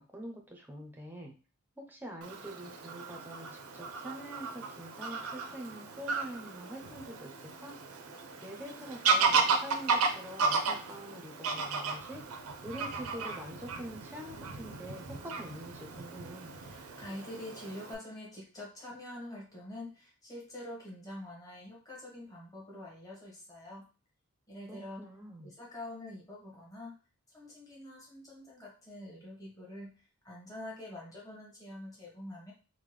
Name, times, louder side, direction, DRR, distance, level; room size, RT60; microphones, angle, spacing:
voice 1, 0.0-1.3 1.8-7.8 8.4-12.2 12.6-16.5 24.7-25.5, equal, 10° right, 1 dB, 0.6 m, -45 dB
Fowl / Bird vocalization bird call bird song, 2.2-17.9, right 4 dB, 80° right, 0.5 m, -34 dB
voice 2, 16.6-23.9 24.5-25.0 25.4-27.0 27.3-32.5, left 1 dB, 15° left, -4 dB, 1.2 m, -46 dB
3.6 x 2.1 x 3.2 m, 0.34 s
head